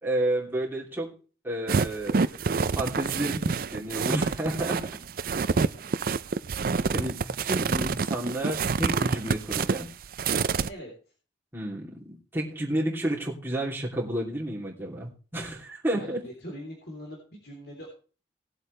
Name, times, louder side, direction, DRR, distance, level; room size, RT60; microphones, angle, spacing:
voice 1, 0.0-1.1 1.4-4.9 6.9-9.9 11.5-16.2, right 1 dB, 10° right, -3 dB, 2.9 m, -31 dB
sound 1, 1.7-10.7, right 5 dB, 50° right, 0.5 m, -27 dB
voice 2, 5.3-5.8 10.7-10.9 15.9-17.9, equal, 60° left, -1 dB, 3.5 m, -42 dB
19.0 x 8.0 x 3.3 m, 0.37 s
head